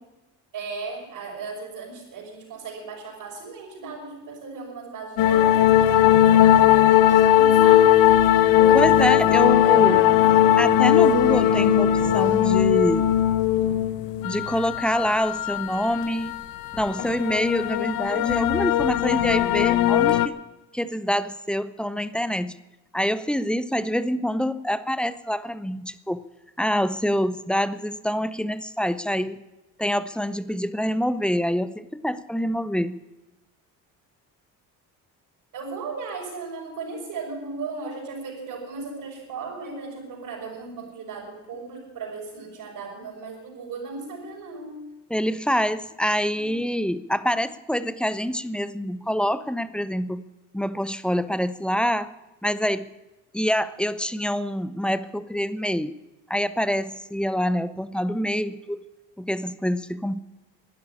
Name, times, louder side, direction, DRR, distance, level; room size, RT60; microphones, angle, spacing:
voice 1, 0.5-7.9 8.6-10.1 35.5-44.8 46.3-46.6, right 4 dB, 70° right, -3 dB, 5.8 m, -37 dB
sound 1, 5.2-20.3, left 11 dB, 85° left, 0.9 m, -18 dB
voice 2, 8.7-10.0 10.6-13.1 14.2-16.3 16.7-20.4 20.7-22.5 22.9-26.2 26.6-29.4 29.8-33.0 45.1-50.2 50.5-52.1 52.4-52.9 53.3-55.9 56.3-58.8 59.2-60.2, equal, 5° left, 15 dB, 0.5 m, -26 dB
12.0 x 10.0 x 9.9 m, 1.0 s
cardioid pair, 105°, 34 cm